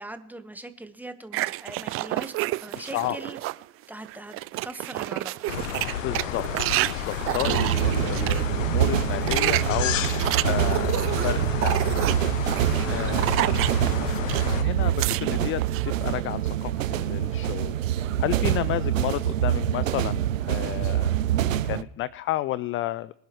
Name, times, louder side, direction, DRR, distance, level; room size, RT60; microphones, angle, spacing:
voice 1, 0.0-3.4 3.9-4.4 4.6-5.3 7.3-8.3 12.8-13.2 18.7-19.1, right 1 dB, 5° right, 9 dB, 1.3 m, -41 dB
sound 1, 1.3-3.6 4.0-8.4 9.0-14.5 14.8-15.9, right 18 dB, 35° right, 0.4 m, -29 dB
voice 2, 2.8-3.2 5.9-9.9 10.4-12.0 12.9-13.5 14.5-17.7 18.2-21.1 21.6-23.1, left 15 dB, 35° left, 19 dB, 0.4 m, -31 dB
sound 2, 5.5-14.6, left 9 dB, 85° left, 0.9 m, -31 dB
sound 3, 7.4-21.8, right 11 dB, 90° right, 0.6 m, -25 dB
24.0 x 10.5 x 3.1 m, 0.80 s
hypercardioid pair, 85°, 38 cm